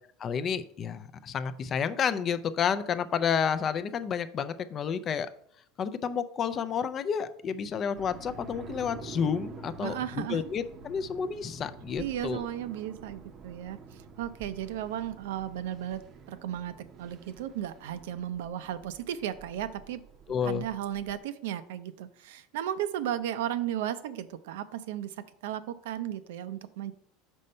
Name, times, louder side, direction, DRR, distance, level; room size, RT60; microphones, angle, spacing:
voice 1, 0.2-5.3 5.8-12.5 20.3-20.6, left 7 dB, 30° left, 12 dB, 0.4 m, -30 dB
sound 1, 8.0-21.2, right 4 dB, 40° right, 0.6 m, -48 dB
voice 2, 9.8-10.4 12.0-20.0 20.4-26.9, right 11 dB, 85° right, 12 dB, 0.5 m, -35 dB
5.3 x 4.2 x 5.4 m, 0.63 s
supercardioid pair, 135°, 0 cm